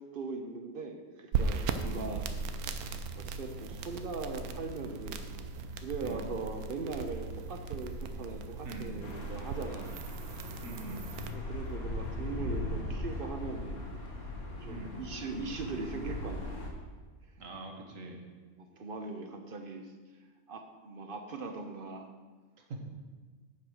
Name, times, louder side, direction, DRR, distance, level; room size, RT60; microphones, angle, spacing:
voice 1, 0.1-2.3 2.6-2.8 3.2-5.2 5.8-9.9 11.3-13.9 14.6-16.5 18.6-19.9 20.5-22.1, right 3 dB, 45° right, 5 dB, 0.9 m, -40 dB
sound 1, 1.3-11.3, right 4 dB, 85° right, 1.1 m, -37 dB
sound 2, 9.0-16.7, left 1 dB, 75° left, 1.9 m, -39 dB
voice 2, 10.6-11.1 14.7-15.0 17.4-18.2 22.7-22.8, right 2 dB, 65° right, 2 dB, 1.7 m, -43 dB
10.0 x 5.0 x 6.2 m, 1.4 s
omnidirectional pair, 1.5 m